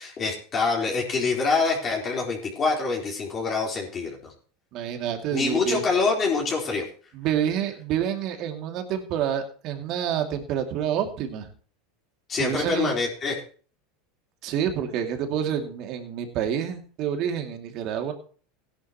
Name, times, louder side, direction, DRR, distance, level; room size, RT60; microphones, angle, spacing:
voice 1, 0.0-4.2 5.3-6.8 12.3-13.4, left 4 dB, 35° left, -2 dB, 4.1 m, -25 dB
voice 2, 4.7-5.8 7.1-11.5 12.4-12.9 14.4-18.1, right 9 dB, 50° right, 5 dB, 2.5 m, -28 dB
16.5 x 11.0 x 3.0 m, 0.41 s
hypercardioid pair, 110°, 0 cm